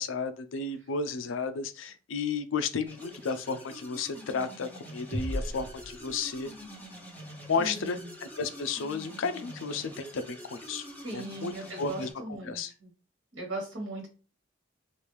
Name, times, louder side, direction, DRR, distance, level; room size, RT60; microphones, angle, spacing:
voice 1, 0.0-6.5 7.5-10.9 11.1-12.7, left 5 dB, 85° left, 10 dB, 0.4 m, -33 dB
sound 1, 2.9-12.1, equal, 10° left, 1.2 m, -46 dB
sound 2, 5.1-6.8, equal, 60° right, 0.7 m, -36 dB
voice 2, 7.6-8.1 11.0-12.9 13.3-14.1, right 2 dB, 90° right, -1 dB, 1.4 m, -38 dB
3.2 x 2.5 x 3.1 m, 0.35 s
head